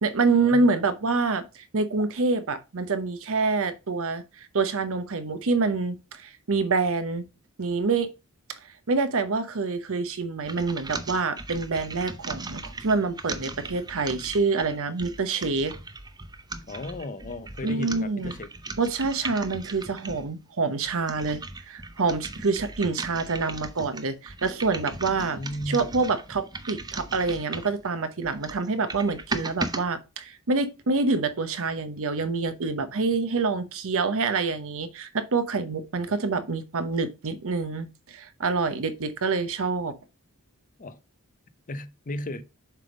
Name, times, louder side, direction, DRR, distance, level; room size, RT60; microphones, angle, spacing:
voice 1, 0.0-7.3 7.6-8.1 8.5-8.6 8.9-15.7 17.6-18.3 18.8-21.4 21.7-25.4 25.7-39.9, right 4 dB, 65° right, 0.8 m, -26 dB
sound 1, 10.4-20.3 20.8-27.8 28.2-29.8, right 3 dB, 20° right, 0.6 m, -38 dB
voice 2, 16.6-18.5 25.1-26.0 40.8-41.0 41.7-42.4, left 1 dB, 35° left, 0.6 m, -35 dB
7.4 x 3.5 x 5.1 m
head